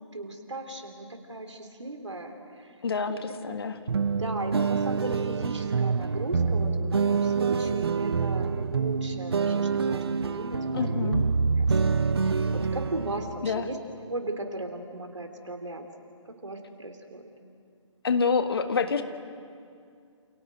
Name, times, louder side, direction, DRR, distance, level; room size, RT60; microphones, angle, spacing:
voice 1, 0.1-2.7 3.1-3.6 4.2-11.1 11.6-11.7 12.2-13.8 14.1-15.8 16.2-17.2, right 2 dB, 70° right, 5 dB, 3.4 m, -37 dB
voice 2, 2.8-3.8 10.7-11.2 13.4-13.7 18.0-19.0, left 5 dB, 50° left, 8 dB, 1.7 m, -27 dB
sound 1, 3.9-13.4, right 5 dB, 55° right, 1.0 m, -26 dB
29.0 x 28.5 x 5.1 m, 2.3 s
figure-of-eight pair, 140°, 16 cm